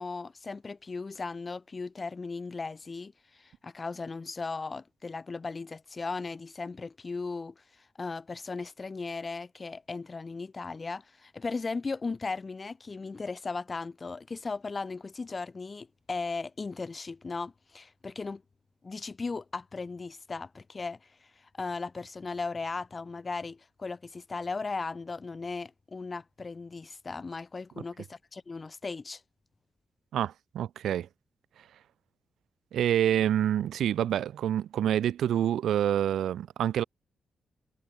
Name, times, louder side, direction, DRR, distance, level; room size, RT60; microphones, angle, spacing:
voice 1, 0.0-18.4 18.8-21.0 21.6-29.2, left 4 dB, 25° left, 0.7 m, -37 dB
voice 2, 30.1-31.1 32.7-36.8, right 10 dB, 85° right, 0.4 m, -27 dB
wide cardioid pair, 140°, 0 cm